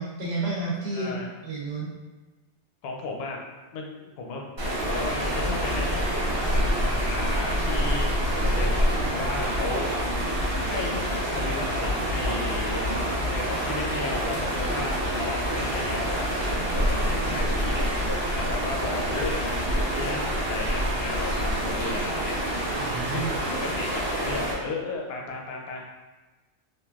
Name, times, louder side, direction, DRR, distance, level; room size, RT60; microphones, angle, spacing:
voice 1, 0.0-1.1 1.4-1.9 22.8-23.3, right 3 dB, 65° right, -5 dB, 1.1 m, -30 dB
voice 2, 0.9-1.3 2.8-4.5 4.8-8.1 8.4-10.0 10.7-11.0 11.3-16.3 16.7-17.9 18.3-22.4 23.1-25.9, left 3 dB, 65° left, 0 dB, 0.7 m, -35 dB
sound 1, 4.6-24.5, equal, 30° right, 0.5 m, -27 dB
3.1 x 2.5 x 2.3 m, 1.2 s
omnidirectional pair, 1.2 m